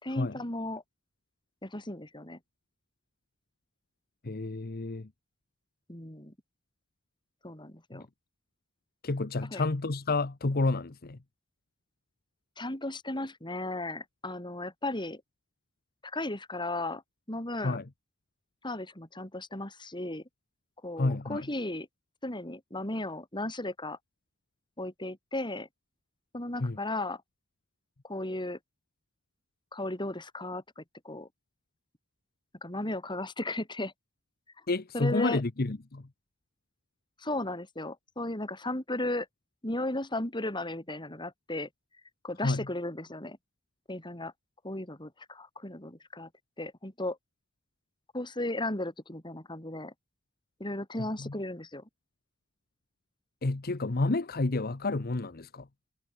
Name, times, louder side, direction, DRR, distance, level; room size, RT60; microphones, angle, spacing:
voice 1, 0.0-0.8 1.6-2.4 5.9-6.3 7.4-8.1 9.5-9.6 12.6-15.2 16.0-17.0 17.3-17.8 18.6-20.2 20.8-21.9 22.2-24.0 24.8-25.7 26.3-27.2 28.0-28.6 29.7-31.3 32.6-33.9 34.9-35.4 37.2-39.3 39.6-41.7 42.2-43.4 43.9-44.3 44.6-46.3 46.6-47.2 48.1-49.9 50.6-51.8, left 1 dB, 20° left, 4.7 m, -35 dB
voice 2, 4.2-5.1 7.9-8.0 9.0-11.2 17.6-17.8 21.0-21.5 26.6-26.8 34.7-36.1 42.4-42.7 51.2-51.3 53.4-55.7, left 2 dB, 45° left, 0.9 m, -30 dB
head